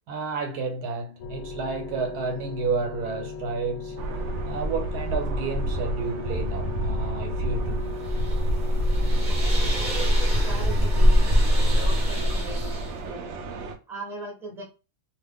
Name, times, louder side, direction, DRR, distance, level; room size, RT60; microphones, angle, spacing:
voice 1, 0.1-4.0 4.4-7.8, right 4 dB, 85° right, 1.3 m, -31 dB
sound 1, 1.2-13.8, left 3 dB, 65° left, 0.8 m, -38 dB
sound 2, 4.0-13.8, right 2 dB, 65° right, 0.8 m, -32 dB
sound 3, 7.6-13.0, equal, 40° right, 0.8 m, -22 dB
voice 2, 9.3-13.3 13.9-14.6, right 3 dB, ahead, 0.9 m, -38 dB
2.9 x 2.4 x 3.5 m
omnidirectional pair, 1.6 m